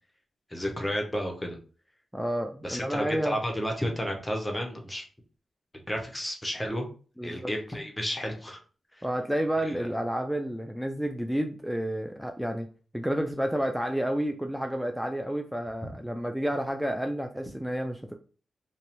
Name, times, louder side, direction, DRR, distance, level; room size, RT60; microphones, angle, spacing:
voice 1, 0.5-1.6 2.6-5.0 5.9-6.9 7.2-8.6 9.0-9.1 9.6-9.9, equal, 15° left, 2 dB, 0.7 m, -32 dB
voice 2, 2.1-3.4 7.2-7.5 9.0-12.7 12.9-18.1, equal, ahead, 4 dB, 0.3 m, -30 dB
2.6 x 2.0 x 2.8 m, 0.38 s
cardioid pair, 60°, 0 cm